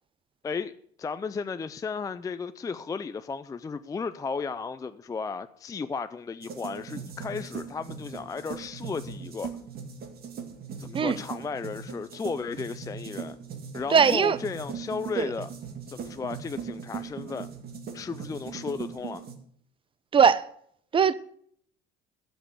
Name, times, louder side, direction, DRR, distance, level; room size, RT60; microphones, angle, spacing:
voice 1, 1.0-9.5 10.8-13.4 13.7-15.5 15.9-17.5 17.9-19.3, left 5 dB, 15° left, 0.4 m, -34 dB
sound 1, 6.4-19.4, right 6 dB, 50° right, 2.1 m, -39 dB
voice 2, 13.9-14.4 15.2-15.3 20.1-20.5 20.9-21.1, right 6 dB, 25° right, 0.7 m, -20 dB
12.5 x 6.2 x 8.0 m
cardioid pair, 120°, 20 cm